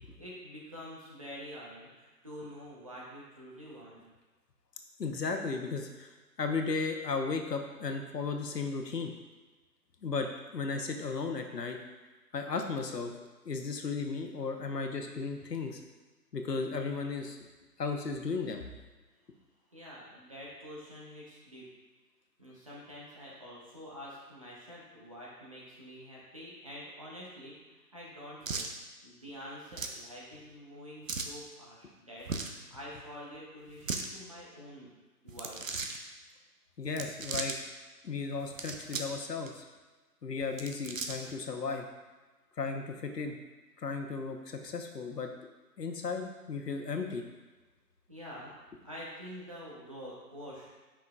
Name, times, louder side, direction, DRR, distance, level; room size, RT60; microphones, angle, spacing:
voice 1, 0.2-4.0 19.7-21.7 22.4-28.7 29.0-32.3 32.7-34.9 35.2-35.7 48.1-50.7, equal, 20° right, -6 dB, 0.8 m, -47 dB
voice 2, 5.0-6.1 6.4-9.1 10.0-11.8 12.3-13.1 13.4-15.8 16.3-17.4 17.8-18.6 36.8-37.5 38.0-39.6 40.2-41.8 42.6-43.3 43.8-45.3 45.8-47.2, left 4 dB, 80° left, 4 dB, 1.0 m, -35 dB
sound 1, 28.4-28.7 29.7-30.0 31.1-31.4 32.2-32.6 33.7-34.1 35.3-36.0 36.9-37.6 38.4-39.2 39.5-39.6 40.4-41.3, right 4 dB, 55° right, 0.6 m, -37 dB
7.3 x 5.7 x 2.3 m, 1.2 s
figure-of-eight pair, 160°, 48 cm